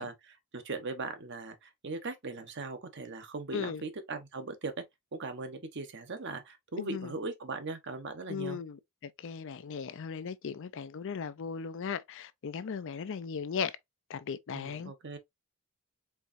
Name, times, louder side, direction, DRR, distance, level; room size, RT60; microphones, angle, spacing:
voice 1, 0.0-4.7 5.1-8.6 14.5-15.2, right 3 dB, 50° right, 0.9 m, -39 dB
voice 2, 6.8-7.1 8.3-13.8 14.1-14.9, left 6 dB, 55° left, 0.4 m, -37 dB
4.6 x 3.5 x 2.5 m
head